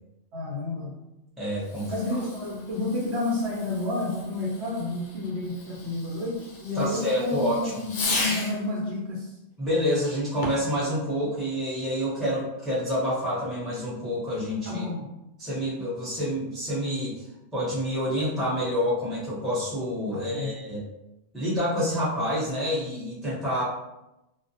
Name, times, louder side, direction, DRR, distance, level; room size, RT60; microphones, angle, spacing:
voice 1, 0.3-0.9 1.9-9.3 14.7-15.0 20.1-20.5, left 2 dB, 65° right, -3 dB, 0.9 m, -30 dB
voice 2, 1.4-1.9 6.8-7.7 9.6-14.8 15.4-17.2 17.5-20.8 21.3-23.6, equal, ahead, -9 dB, 0.6 m, -28 dB
Fireworks, 1.6-8.7 10.3-10.8, left 2 dB, 55° left, 0.6 m, -36 dB
2.3 x 2.0 x 2.6 m, 0.93 s
omnidirectional pair, 1.3 m